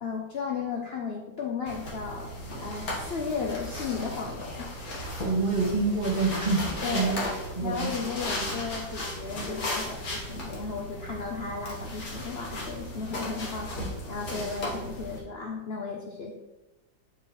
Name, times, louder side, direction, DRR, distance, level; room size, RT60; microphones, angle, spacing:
voice 1, 0.0-2.3 2.6-4.7 6.8-16.3, left 5 dB, 70° left, -1 dB, 0.5 m, -35 dB
sound 1, 1.7-15.2, left 1 dB, 55° left, 1.9 m, -36 dB
voice 2, 5.2-7.2 7.6-7.9, right 3 dB, 25° right, -6 dB, 1.7 m, -26 dB
8.8 x 4.6 x 3.1 m, 1.0 s
omnidirectional pair, 2.0 m